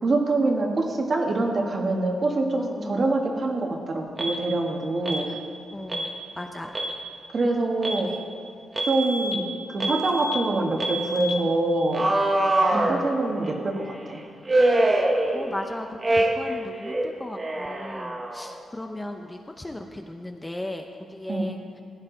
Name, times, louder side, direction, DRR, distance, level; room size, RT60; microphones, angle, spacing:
voice 1, 0.0-5.3 7.3-8.1 8.8-12.1 12.7-14.2 21.3-21.5, right 2 dB, 40° right, 2 dB, 1.5 m, -25 dB
voice 2, 2.6-3.0 5.3-5.4 5.7-6.8 8.1-8.2 12.7-13.2 15.3-21.6, left 1 dB, 10° left, 4 dB, 0.6 m, -36 dB
Alarm, 4.2-4.4 5.1-5.3 5.9-6.1 6.6-7.0 7.8-8.1 8.8-9.4 9.8-10.4 10.8-11.3 11.9-13.5 14.5-15.7 16.0-16.6 16.8-18.5, right 1 dB, 25° right, 1.2 m, -24 dB
15.0 x 9.7 x 3.9 m, 2.6 s
cardioid pair, 125°, 0 cm